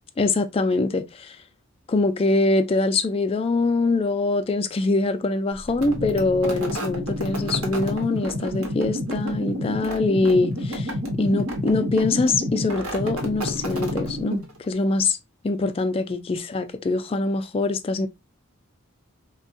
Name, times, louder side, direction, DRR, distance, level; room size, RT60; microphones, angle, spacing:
voice 1, 0.2-1.4 1.9-10.9 11.2-15.2 15.4-18.1, left 3 dB, 25° left, 0.3 m, -23 dB
sound 1, 5.7-14.7, equal, 90° right, 1.0 m, -29 dB
3.4 x 2.2 x 2.6 m
head